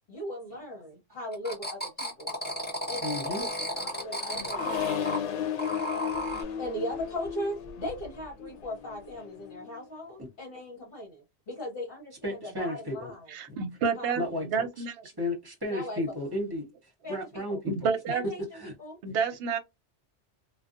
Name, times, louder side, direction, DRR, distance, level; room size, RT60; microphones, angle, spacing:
voice 1, 0.1-2.4 2.9-3.5 4.0-5.7 6.3-13.3 13.9-14.2 15.7-16.0 17.0-17.6 18.1-18.4 18.8-19.0, left 1 dB, 50° left, 1.2 m, -38 dB
sound 1, 1.3-5.2 5.6-6.4, equal, 10° left, 0.6 m, -33 dB
voice 2, 3.0-3.5 10.2-10.3 12.2-13.1 13.5-13.6 14.2-14.8 15.2-17.9 18.5-18.7 19.1-19.2, left 1 dB, 20° right, 0.8 m, -34 dB
Accelerating revving vroom, 3.1-9.8, left 9 dB, 75° left, 0.9 m, -35 dB
voice 3, 13.3-14.2 14.5-14.9 17.8-18.2 19.0-19.6, right 6 dB, 65° right, 0.8 m, -29 dB
2.5 x 2.2 x 2.4 m
omnidirectional pair, 1.2 m